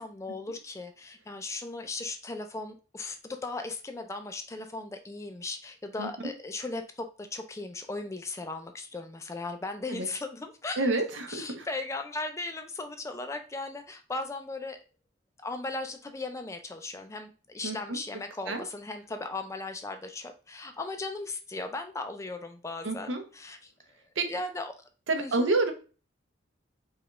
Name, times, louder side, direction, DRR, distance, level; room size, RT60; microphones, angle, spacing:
voice 1, 0.0-10.9 11.3-14.8 15.4-23.7 24.3-24.7 25.2-25.5, left 3 dB, 15° left, 7 dB, 0.3 m, -37 dB
voice 2, 10.8-11.7 17.6-18.0 18.5-18.6 22.8-23.3 24.2-24.3 25.1-25.7, right 3 dB, 80° right, 6 dB, 0.7 m, -28 dB
4.8 x 2.3 x 3.0 m, 0.36 s
head